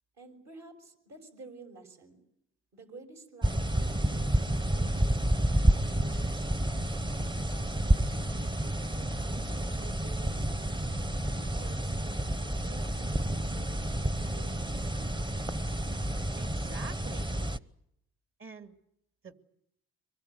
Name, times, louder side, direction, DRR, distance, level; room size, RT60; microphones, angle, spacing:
voice 1, 0.2-2.2 2.7-6.9 7.1-8.4 9.0-10.6 11.3-14.9, right 3 dB, 65° right, 4 dB, 6.4 m, -52 dB
sound 1, 3.4-17.6, right 1 dB, 15° right, 0.9 m, -30 dB
sound 2, 4.0-17.5, right 4 dB, 85° right, 2.8 m, -55 dB
voice 2, 16.4-17.4 18.4-18.8 19.2-19.3, right 5 dB, 45° right, 8 dB, 2.4 m, -46 dB
24.5 x 21.0 x 9.3 m, 0.77 s
cardioid pair, 90°, 30 cm